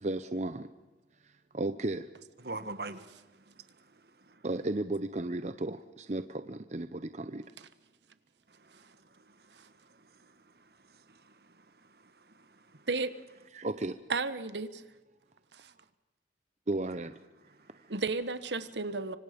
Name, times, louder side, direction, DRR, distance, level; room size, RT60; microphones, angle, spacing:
voice 1, 0.0-0.7 1.5-2.0 4.4-7.4 13.5-13.9 16.7-17.1, right 2 dB, 40° right, 0.8 m, -34 dB
voice 2, 2.4-4.5 8.5-12.9 17.3-18.0, right 2 dB, 60° right, 1.5 m, -48 dB
voice 3, 14.1-14.8 15.5-15.7 17.9-19.2, right 3 dB, 75° right, 1.3 m, -33 dB
26.0 x 25.5 x 5.3 m
head